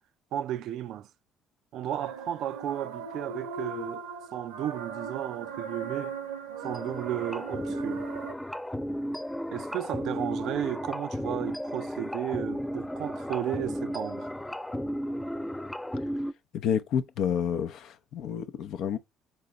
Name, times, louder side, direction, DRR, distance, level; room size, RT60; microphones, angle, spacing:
voice 1, 0.3-1.1 1.7-4.0 4.3-6.1 6.6-8.1 9.5-14.3, right 11 dB, 65° right, 0.3 m, -34 dB
sound 1, 2.0-8.3, right 6 dB, 85° right, 0.7 m, -39 dB
sound 2, 6.6-16.3, equal, 10° left, 0.4 m, -34 dB
voice 2, 16.5-19.0, left 8 dB, 65° left, 0.5 m, -29 dB
4.1 x 3.8 x 3.0 m
hypercardioid pair, 50°, 0 cm